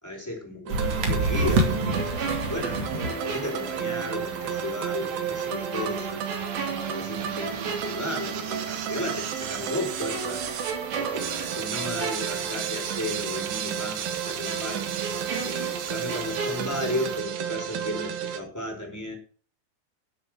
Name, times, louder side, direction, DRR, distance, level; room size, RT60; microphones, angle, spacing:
voice 1, 0.0-2.2 2.5-6.3 6.7-10.4 11.0-15.0 15.4-19.1, left 1 dB, 5° left, 1 dB, 4.3 m, -34 dB
sound 1, 0.7-17.2, right 1 dB, 45° right, 2.8 m, -34 dB
sound 2, 0.7-18.4, right 9 dB, 65° right, 2.9 m, -32 dB
sound 3, 1.4-4.3 4.6-4.8 5.7-8.7 9.0-9.2 10.1-13.1 13.4-13.5 14.4-17.5 17.7-18.0, right 3 dB, 85° right, 5.9 m, -36 dB
13.0 x 7.5 x 6.3 m, 0.44 s
omnidirectional pair, 4.8 m